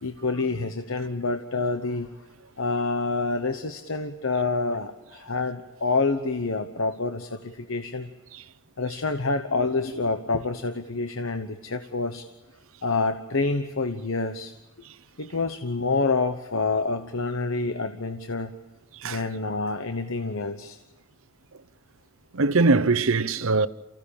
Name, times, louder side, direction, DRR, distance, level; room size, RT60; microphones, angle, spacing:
voice 1, 0.0-2.1 2.6-8.1 8.8-12.3 12.8-14.5 15.2-18.5 19.0-20.8, left 3 dB, 65° left, 1.0 m, -27 dB
voice 2, 22.3-23.7, right 3 dB, 65° right, 0.8 m, -21 dB
29.0 x 16.0 x 8.8 m
head